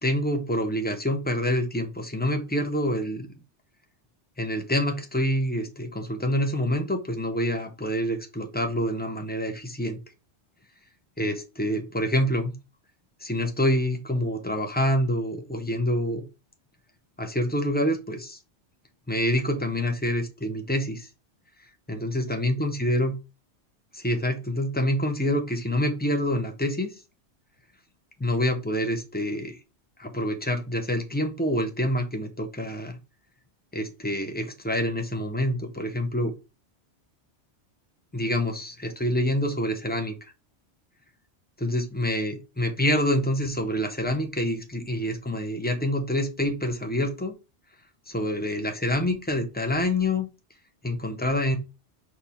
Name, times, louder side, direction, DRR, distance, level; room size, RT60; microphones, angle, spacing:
voice 1, 0.0-3.3 4.4-10.0 11.2-12.5 13.2-16.2 17.2-18.4 19.1-21.1 21.9-23.1 23.9-26.9 28.2-29.6 30.0-33.0 33.7-36.3 38.1-40.3 41.6-47.3 48.1-50.3 50.8-51.6, left 1 dB, 10° left, 5 dB, 0.5 m, -26 dB
5.2 x 2.3 x 4.2 m, 0.29 s
omnidirectional pair, 1.2 m